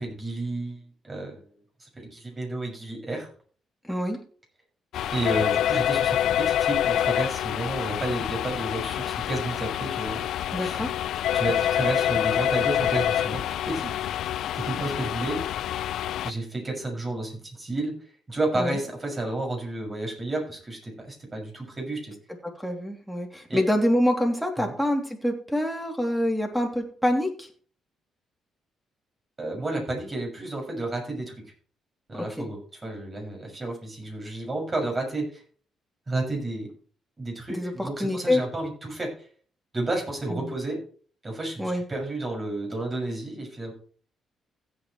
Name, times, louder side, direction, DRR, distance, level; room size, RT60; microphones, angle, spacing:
voice 1, 0.0-1.4 1.8-3.3 5.1-10.3 10.6-10.8 11.3-13.9 14.5-15.4 16.2-17.9 18.3-22.1 23.5-23.6 24.6-24.7 29.4-31.3 32.1-35.4 36.1-36.7 37.2-39.1 39.7-40.8 41.2-43.7, right 2 dB, 25° right, 1 dB, 6.7 m, -31 dB
voice 2, 3.8-4.2 10.5-10.9 18.5-18.8 22.6-27.5 32.4-32.5 37.5-38.4 40.3-40.5 41.6-41.8, left 1 dB, ahead, 3 dB, 3.0 m, -26 dB
sound 1, 4.9-16.3, left 11 dB, 75° left, 0.4 m, -26 dB
16.0 x 8.7 x 3.2 m, 0.43 s
cardioid pair, 90°, 0 cm